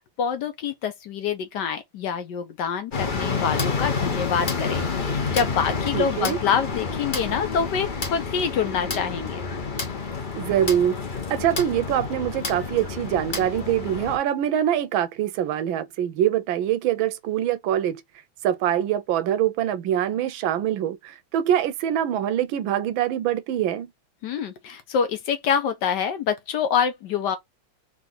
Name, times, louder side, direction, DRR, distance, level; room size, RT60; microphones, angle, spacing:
voice 1, 0.2-9.4 24.2-27.4, left 7 dB, 65° left, 1.2 m, -26 dB
sound 1, 2.9-14.2, left 4 dB, 45° left, 0.6 m, -29 dB
voice 2, 5.9-6.4 10.4-11.0 11.3-18.0 18.4-23.9, right 10 dB, 80° right, 1.4 m, -24 dB
3.7 x 3.2 x 3.8 m
omnidirectional pair, 2.2 m